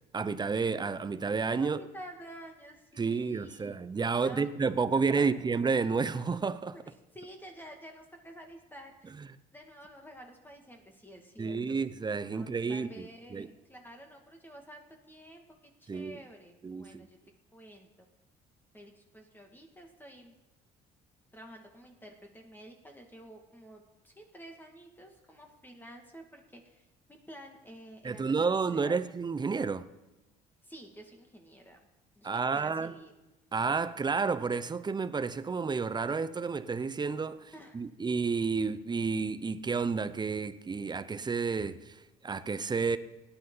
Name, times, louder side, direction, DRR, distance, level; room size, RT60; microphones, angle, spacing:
voice 1, 0.1-1.8 3.0-6.7 9.2-9.3 11.4-13.5 15.9-16.2 16.6-17.1 28.0-29.9 32.2-32.9 33.5-43.0, right 5 dB, 25° right, 0.8 m, -31 dB
voice 2, 1.6-3.8 4.2-4.5 5.1-5.3 6.7-6.8 7.1-9.1 9.5-11.8 12.3-17.2 17.5-18.1 18.7-20.4 21.3-29.0 30.6-31.8 32.2-33.1 37.5-37.9, equal, 10° left, 2.2 m, -50 dB
17.5 x 10.0 x 4.0 m
supercardioid pair, 75°, 17 cm